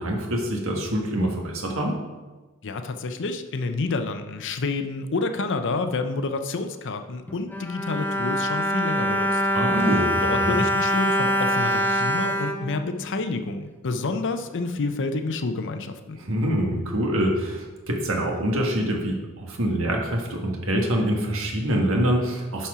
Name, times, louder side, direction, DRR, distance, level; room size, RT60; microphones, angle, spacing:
voice 1, 0.0-2.0 9.5-10.6 16.2-22.7, equal, 65° right, 1 dB, 1.5 m, -25 dB
voice 2, 2.6-9.4 10.2-16.2, left 3 dB, 55° left, 8 dB, 0.6 m, -29 dB
Bowed string instrument, 7.3-13.5 14.2-14.3 14.6-14.7, equal, 10° left, 0.5 m, -24 dB
11.0 x 4.4 x 4.8 m, 1.2 s
head